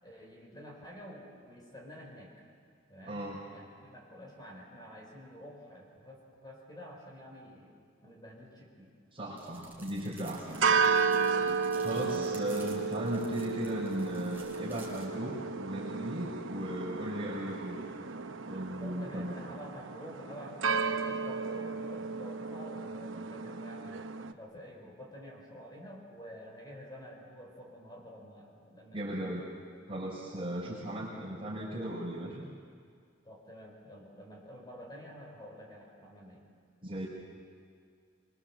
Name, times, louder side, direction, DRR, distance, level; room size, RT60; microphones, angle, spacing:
voice 1, 0.0-2.3 2.9-3.2 3.5-7.7 8.0-8.9 11.7-12.2 18.8-29.1 33.2-36.5, equal, 20° left, -1 dB, 4.9 m, -49 dB
voice 2, 3.0-3.4 9.1-10.8 11.8-15.3 15.6-17.8 18.5-19.3 28.9-29.5 29.9-32.4 36.8-37.1, right 1 dB, 25° right, -7 dB, 5.0 m, -37 dB
sound 1, 9.4-15.0, right 3 dB, 10° right, 4.4 m, -53 dB
sound 2, 10.5-24.3, right 5 dB, 85° right, 1.0 m, -33 dB
24.5 x 24.0 x 7.4 m, 2.1 s
head